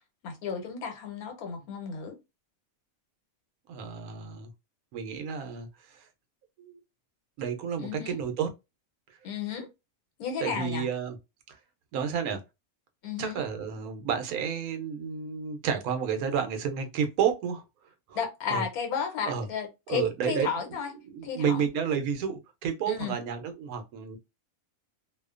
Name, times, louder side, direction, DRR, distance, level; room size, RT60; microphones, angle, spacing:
voice 1, 0.2-2.2 7.8-8.2 9.2-9.7 10.2-10.9 13.0-13.4 18.1-20.9 21.2-21.7 22.9-23.2, left 6 dB, 85° left, 1.2 m, -33 dB
voice 2, 3.7-4.5 4.9-6.1 6.6-6.8 7.4-8.5 10.4-11.2 11.5-11.6 11.9-12.4 13.2-17.6 18.1-18.2 18.5-18.6 19.3-19.5 19.9-20.5 21.1-24.2, right 7 dB, 85° right, 1.1 m, -31 dB
2.7 x 2.1 x 2.3 m
omnidirectional pair, 1.5 m